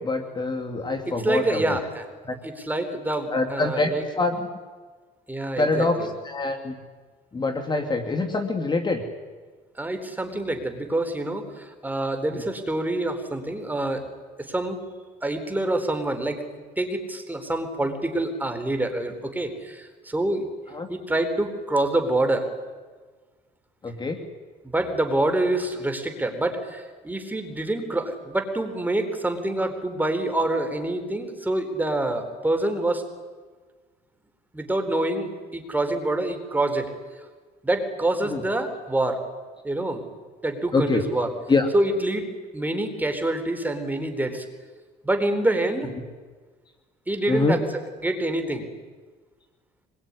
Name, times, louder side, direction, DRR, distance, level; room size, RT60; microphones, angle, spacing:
voice 1, 0.0-1.8 2.2-2.3 3.3-4.5 5.6-6.8 7.3-9.0 12.3-12.4 20.7-20.9 23.8-24.2 38.2-38.4 40.7-41.0 41.5-41.7 47.3-47.6, left 3 dB, 25° left, 5 dB, 2.6 m, -25 dB
voice 2, 1.1-2.0 2.4-4.0 5.3-6.1 9.8-14.0 14.4-14.8 15.2-20.4 20.9-22.5 24.6-33.1 34.5-36.9 37.6-39.2 39.6-40.0 40.4-41.3 41.7-44.4 45.0-45.9 47.1-47.6 48.0-48.7, right 1 dB, 10° right, 6 dB, 4.2 m, -26 dB
25.0 x 22.5 x 9.9 m, 1.4 s
cardioid pair, 110°, 17 cm